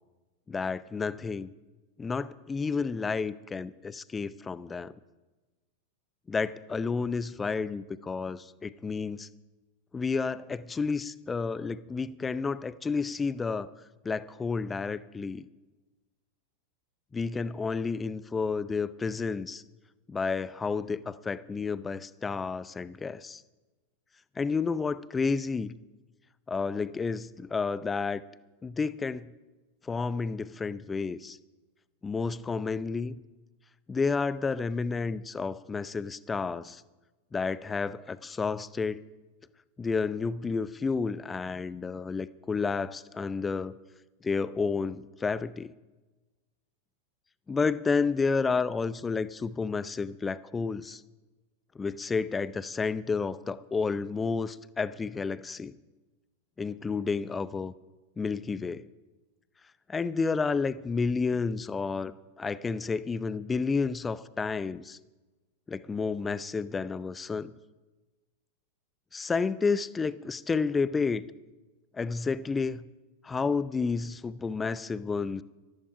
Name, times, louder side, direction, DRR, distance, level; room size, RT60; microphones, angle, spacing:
voice 1, 0.5-1.5 2.0-4.9 6.3-9.3 9.9-13.7 14.0-15.5 17.1-19.6 20.1-23.4 24.4-25.8 26.5-28.2 28.6-29.3 29.8-31.4 32.0-33.2 33.9-36.8 37.3-39.0 39.8-43.8 44.2-45.7 47.5-51.0 51.7-55.8 56.6-57.7 58.2-58.9 59.9-65.0 65.7-67.5 69.1-71.2 71.9-72.8 73.2-75.4, left 4 dB, 15° left, 17 dB, 0.6 m, -31 dB
14.0 x 13.5 x 5.0 m, 1.2 s
figure-of-eight pair, 90°, 0 cm